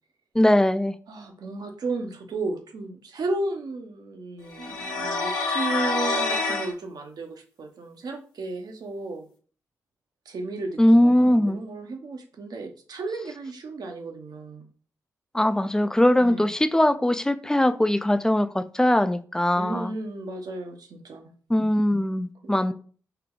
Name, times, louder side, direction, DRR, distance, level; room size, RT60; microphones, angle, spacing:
voice 1, 0.3-1.0 10.8-11.6 15.3-19.9 21.5-22.7, left 1 dB, 10° left, 0.3 m, -21 dB
voice 2, 1.1-9.3 10.3-14.7 16.2-16.5 19.5-21.3 22.4-22.7, right 2 dB, 65° right, 0.7 m, -34 dB
sound 1, 4.5-6.7, left 3 dB, 70° left, 1.1 m, -26 dB
3.3 x 2.2 x 3.7 m
supercardioid pair, 40°, 7 cm